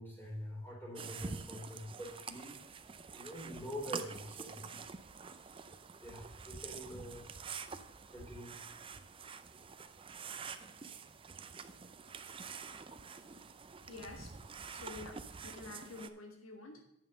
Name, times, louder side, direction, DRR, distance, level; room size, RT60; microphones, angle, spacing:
voice 1, 0.0-2.6 3.1-4.8 5.3-5.7 6.0-7.3 8.1-8.6, equal, 10° left, -4 dB, 3.5 m, -46 dB
sound 1, 1.0-16.1, right 5 dB, 25° right, 0.4 m, -47 dB
voice 2, 13.8-14.3 14.7-16.8, left 3 dB, 70° left, 3 dB, 1.2 m, -49 dB
9.2 x 5.7 x 6.5 m, 0.84 s
head